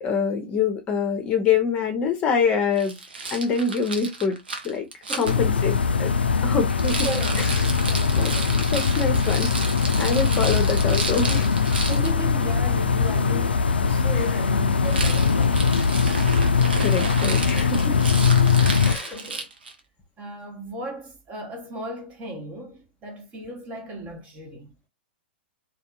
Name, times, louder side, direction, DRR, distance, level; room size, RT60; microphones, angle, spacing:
voice 1, 0.0-2.9 3.3-4.4 4.6-4.9 5.1-6.1 6.4-7.1 7.4-7.7 8.2-9.6 10.0-11.5 15.8-15.9 16.8-18.0 18.8-19.2, left 5 dB, 25° left, 0.7 m, -25 dB
Rattle, 2.8-5.3 6.7-12.1 14.8-19.8, right 3 dB, 70° right, 0.7 m, -33 dB
voice 2, 5.1-5.6 7.0-7.4 7.9-8.6 10.5-10.7 11.9-15.7 19.1-19.5 20.2-24.7, right 1 dB, 25° right, 0.9 m, -36 dB
sound 1, 5.3-18.9, left 5 dB, 75° left, 0.4 m, -21 dB
2.6 x 2.3 x 2.3 m
figure-of-eight pair, 105°, 6 cm